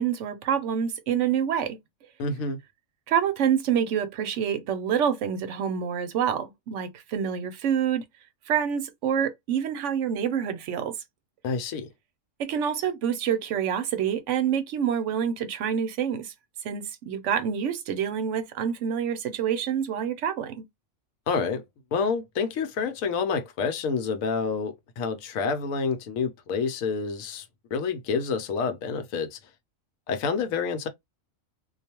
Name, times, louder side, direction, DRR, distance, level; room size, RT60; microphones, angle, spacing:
voice 1, 0.0-1.8 3.1-8.0 8.5-10.9 12.4-16.3 16.6-20.6, right 8 dB, 65° right, 0.9 m, -27 dB
voice 2, 2.2-2.6 11.4-11.9 21.3-21.6 21.9-27.5 27.7-29.4 30.1-30.9, left 5 dB, 75° left, 1.0 m, -28 dB
2.4 x 2.3 x 2.8 m
omnidirectional pair, 1.4 m